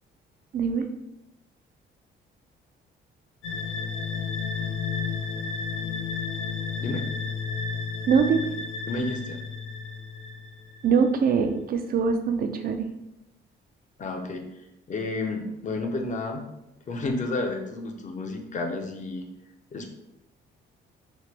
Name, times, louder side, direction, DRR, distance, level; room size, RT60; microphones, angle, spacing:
voice 1, 0.5-0.9 8.1-8.5 10.8-12.9, right 6 dB, 50° right, 7 dB, 0.4 m, -23 dB
sound 1, 3.4-11.0, left 5 dB, 90° left, 0.6 m, -32 dB
voice 2, 8.9-9.4 14.0-14.5 14.9-16.5 16.9-19.3 19.7-19.9, left 2 dB, 40° left, 3 dB, 0.5 m, -31 dB
2.9 x 2.1 x 3.2 m, 0.88 s
cardioid pair, 90°, 20 cm